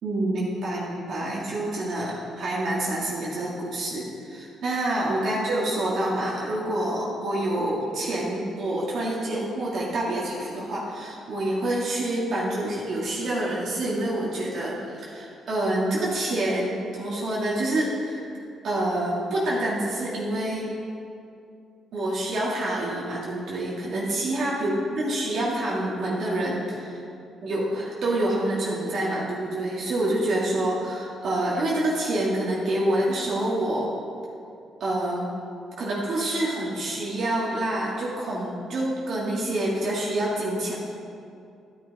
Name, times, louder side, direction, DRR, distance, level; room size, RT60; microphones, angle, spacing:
voice 1, 0.0-18.2 18.6-20.7 21.9-27.0 27.4-33.9 34.8-35.3 35.8-40.7, right 1 dB, 65° right, -5 dB, 2.1 m, -27 dB
11.0 x 9.9 x 4.2 m, 2.5 s
cardioid pair, 90°, 0 cm